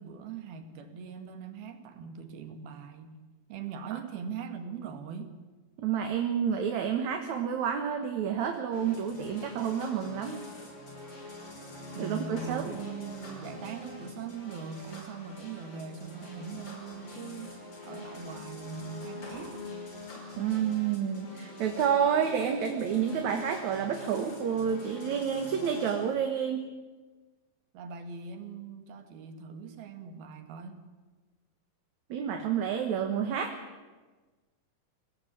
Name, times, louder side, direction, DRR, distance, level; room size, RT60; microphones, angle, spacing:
voice 1, 0.0-3.2 3.5-5.4 12.0-19.7 27.7-30.8, right 6 dB, 90° right, 7 dB, 3.8 m, -41 dB
voice 2, 5.8-10.4 12.0-12.7 20.4-26.7 32.1-33.5, right 8 dB, 60° right, 5 dB, 2.6 m, -29 dB
sound 1, 8.7-26.1, left 2 dB, 50° left, 6.8 m, -44 dB
24.5 x 18.5 x 8.7 m, 1.3 s
omnidirectional pair, 4.2 m